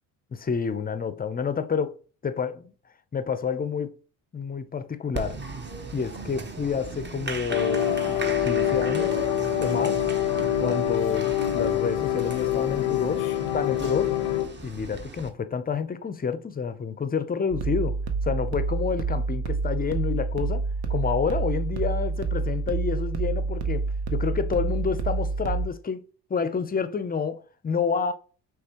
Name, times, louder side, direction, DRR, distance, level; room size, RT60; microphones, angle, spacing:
voice 1, 0.3-2.0 2.2-2.7 3.1-3.9 4.3-5.4 5.9-7.9 8.4-9.1 9.6-10.0 10.6-13.3 13.5-14.1 14.6-26.0 26.3-28.1, left 6 dB, 20° left, 0.5 m, -29 dB
Applause, 5.1-15.3, right 3 dB, 25° right, 0.9 m, -37 dB
sound 1, 7.5-14.4, left 11 dB, 90° left, 0.7 m, -25 dB
sound 2, 17.5-25.7, right 4 dB, 60° right, 0.9 m, -28 dB
5.3 x 3.3 x 2.9 m
supercardioid pair, 70°, 42 cm